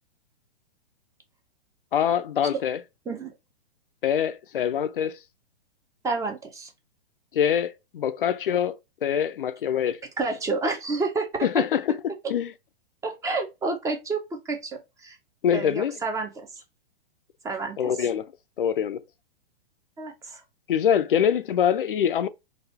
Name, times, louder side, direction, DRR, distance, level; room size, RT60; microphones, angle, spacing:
voice 1, 1.9-2.8 4.0-5.2 7.3-10.0 11.4-12.5 15.4-16.0 17.8-18.3 18.6-19.0 20.7-22.3, left 9 dB, 60° left, 0.5 m, -24 dB
voice 2, 6.0-6.7 10.2-11.3 11.5-11.6 13.0-15.2 15.5-16.5 17.4-17.8 20.0-20.4, right 3 dB, 10° right, 0.7 m, -29 dB
4.0 x 2.5 x 4.1 m
figure-of-eight pair, 110°, 30 cm